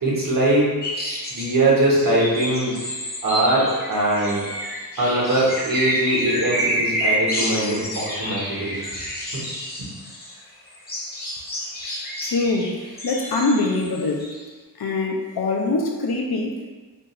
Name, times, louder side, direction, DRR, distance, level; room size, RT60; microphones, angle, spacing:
voice 1, 0.0-2.7 3.2-4.5 5.0-8.9 9.3-9.4, right 1 dB, 55° right, -6 dB, 1.0 m, -21 dB
sound 1, 0.8-1.5 1.9-10.3 10.7-14.4, equal, 25° left, 0.7 m, -29 dB
voice 2, 12.2-14.3 14.7-16.7, left 3 dB, 65° left, 0 dB, 0.5 m, -24 dB
2.6 x 2.3 x 2.9 m, 1.3 s
cardioid pair, 40°, 40 cm